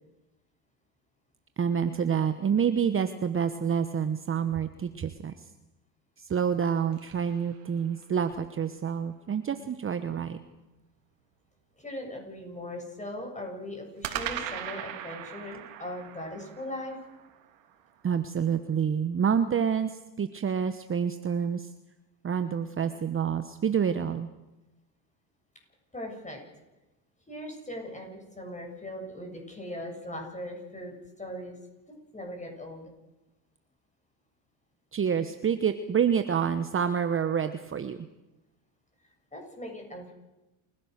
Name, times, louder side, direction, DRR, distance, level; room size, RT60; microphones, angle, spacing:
voice 1, 1.6-5.3 6.2-10.4 18.0-21.7 22.2-24.3 34.9-38.1, right 7 dB, 25° right, 10 dB, 1.1 m, -28 dB
sound 1, 6.3-8.2 14.0-18.3, right 10 dB, 80° right, 3.5 m, -40 dB
voice 2, 11.8-17.0 25.9-26.4 27.3-28.1 28.4-31.6 31.9-32.9 39.3-40.1, left 1 dB, 15° left, 2 dB, 7.7 m, -39 dB
29.0 x 16.0 x 6.6 m, 1.0 s
supercardioid pair, 90°, 48 cm